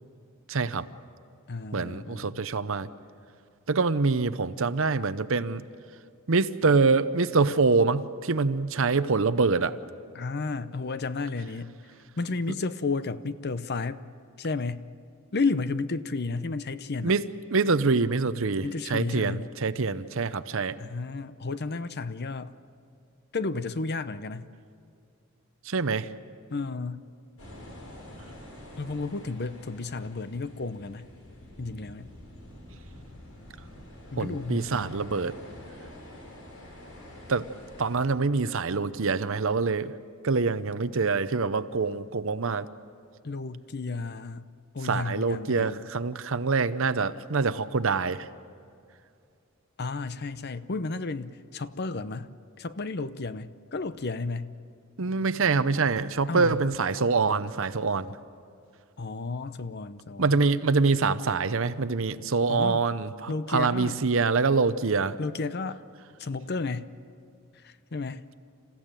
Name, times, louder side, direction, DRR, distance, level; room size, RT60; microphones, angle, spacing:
voice 1, 0.5-0.9 1.7-2.9 3.7-5.6 6.3-9.7 17.0-17.2 17.5-20.8 25.7-26.1 34.2-35.4 37.3-37.4 37.8-39.9 40.2-42.7 44.8-48.3 55.0-58.1 60.2-65.2, right 4 dB, 65° right, 13 dB, 0.8 m, -25 dB
voice 2, 1.5-2.4 10.1-11.8 12.2-14.0 14.4-14.9 15.3-17.2 18.6-19.5 20.8-22.5 23.3-24.5 26.5-27.0 28.8-31.1 31.6-32.1 34.1-35.0 43.2-44.5 44.7-45.8 49.8-54.5 56.3-56.6 59.0-60.4 62.5-62.8 63.3-64.1 65.2-65.8 66.2-67.0 67.6-68.2, left 3 dB, 50° left, 13 dB, 0.7 m, -32 dB
sound 1, 27.4-38.0, left 1 dB, 80° left, 5.6 m, -47 dB
28.0 x 15.0 x 9.0 m, 2.5 s
head